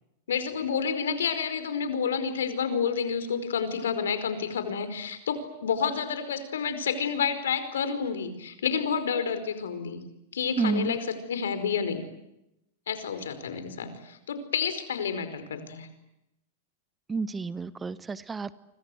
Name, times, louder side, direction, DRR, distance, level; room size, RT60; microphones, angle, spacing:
voice 1, 0.3-10.0 10.3-11.0 11.3-12.0 12.9-15.9, left 6 dB, 90° left, 11 dB, 4.9 m, -29 dB
voice 2, 10.6-10.9 17.1-18.5, right 4 dB, 15° right, 15 dB, 1.2 m, -30 dB
29.5 x 25.0 x 7.9 m, 0.85 s
hypercardioid pair, 125°, 0 cm